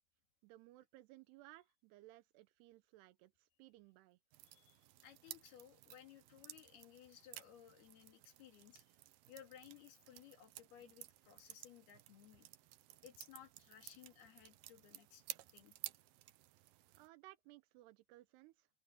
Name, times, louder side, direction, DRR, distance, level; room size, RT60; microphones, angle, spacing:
voice 1, 0.4-4.2 16.9-18.7, right 18 dB, 90° right, 2.8 m, -61 dB
sound 1, 4.3-17.1, right 15 dB, 75° right, 2.4 m, -55 dB
voice 2, 4.5-9.0 9.3-12.5 13.0-15.2 15.5-15.8, left 10 dB, 70° left, 4.2 m, -60 dB
open air
omnidirectional pair, 4.7 m